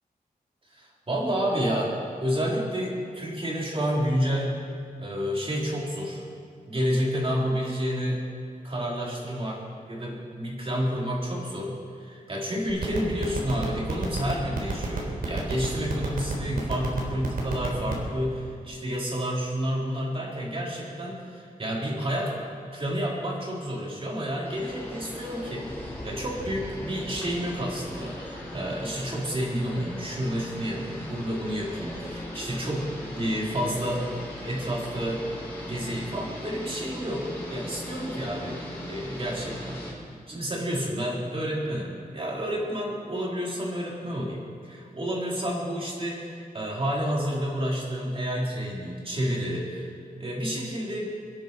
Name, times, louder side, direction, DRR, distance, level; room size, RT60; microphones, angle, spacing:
voice 1, 0.7-4.6 5.0-6.2 6.7-8.2 8.6-22.4 22.7-34.1 34.4-35.4 35.7-39.9 40.3-51.1, equal, 35° right, -4 dB, 3.7 m, -30 dB
sound 1, 12.7-18.1, right 5 dB, 80° right, 3.7 m, -28 dB
sound 2, 24.4-39.9, left 1 dB, 15° left, 5.1 m, -39 dB
25.0 x 10.5 x 4.6 m, 2.3 s
wide cardioid pair, 130°, 15 cm